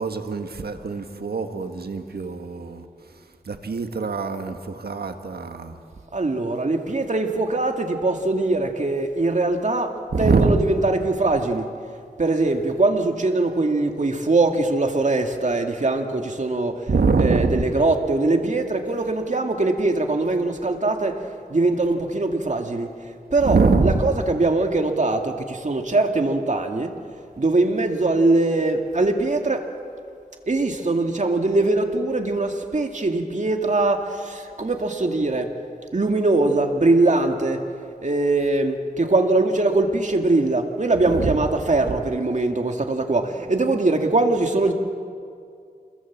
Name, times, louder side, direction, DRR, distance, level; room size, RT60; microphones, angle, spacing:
voice 1, 0.0-2.8 3.5-5.7 10.1-10.6 16.9-17.7 23.4-24.1 41.1-41.4, right 4 dB, 85° right, 1.7 m, -23 dB
voice 2, 6.1-9.9 10.2-11.6 12.2-16.7 17.2-21.1 21.5-22.9 23.3-25.3 25.6-26.9 27.4-29.6 30.5-34.0 34.6-35.5 35.9-37.6 38.0-44.7, right 2 dB, 50° right, 2.3 m, -21 dB
28.0 x 22.0 x 7.5 m
wide cardioid pair, 65°, 16 cm